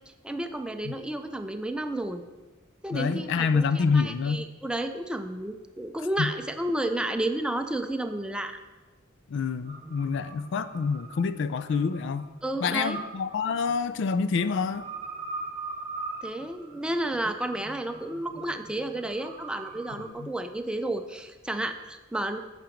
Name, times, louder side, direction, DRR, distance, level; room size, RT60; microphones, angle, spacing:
voice 1, 0.2-2.2 2.8-8.6 12.4-13.0 16.2-22.4, right 1 dB, 5° right, 6 dB, 0.5 m, -31 dB
voice 2, 2.9-4.5 6.2-6.3 9.3-12.3 12.6-14.9 20.1-20.3, left 5 dB, 60° left, 12 dB, 0.4 m, -27 dB
sound 1, 9.6-20.1, right 3 dB, 25° right, 1.3 m, -42 dB
8.7 x 5.9 x 5.1 m, 1.2 s
head